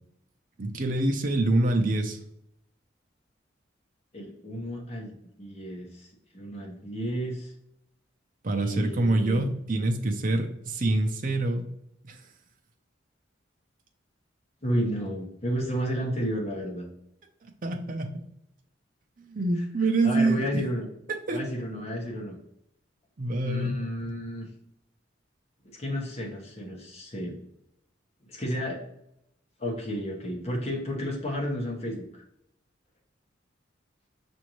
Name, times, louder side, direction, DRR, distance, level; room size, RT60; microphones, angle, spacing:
voice 1, 0.6-2.2 8.4-11.7 12.0-12.2 17.6-18.1 19.2-20.6 21.3-21.4 23.2-23.8, right 2 dB, 45° right, 4 dB, 0.6 m, -26 dB
voice 2, 4.1-6.1 6.3-7.5 8.5-9.5 14.6-16.9 20.0-20.9 21.3-22.4 23.4-24.5 25.6-27.4 28.3-28.8 29.6-32.1, equal, 35° left, 0 dB, 1.1 m, -32 dB
6.1 x 2.6 x 3.0 m, 0.76 s
head